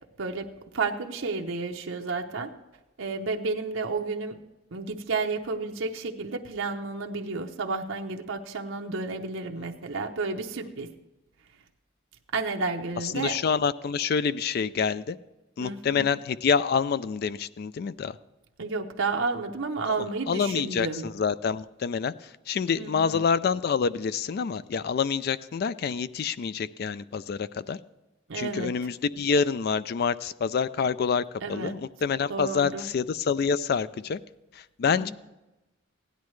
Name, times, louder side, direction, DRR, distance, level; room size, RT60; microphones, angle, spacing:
voice 1, 0.2-2.5 3.0-4.4 4.7-10.9 12.3-13.4 15.6-16.1 18.6-21.1 22.8-23.2 28.3-28.8 31.4-31.8 32.3-32.9 34.9-35.1, right 4 dB, 75° right, 3 dB, 0.8 m, -31 dB
voice 2, 13.1-15.2 15.6-18.2 20.3-27.8 28.4-31.2 31.5-34.2 34.5-35.1, left 6 dB, 50° left, 16 dB, 0.3 m, -27 dB
16.0 x 10.5 x 3.2 m, 1.0 s
head